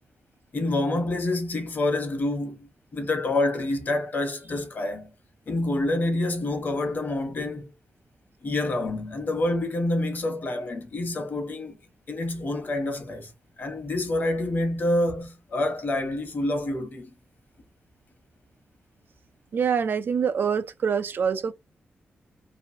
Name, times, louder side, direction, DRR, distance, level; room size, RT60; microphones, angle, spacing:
voice 1, 0.5-5.1 5.5-7.6 8.4-11.8 12.1-13.3 13.6-17.1, left 2 dB, 50° left, 1.1 m, -27 dB
voice 2, 19.5-21.5, right 7 dB, 60° right, 0.3 m, -25 dB
3.0 x 2.5 x 2.7 m
cardioid pair, 95°, 4 cm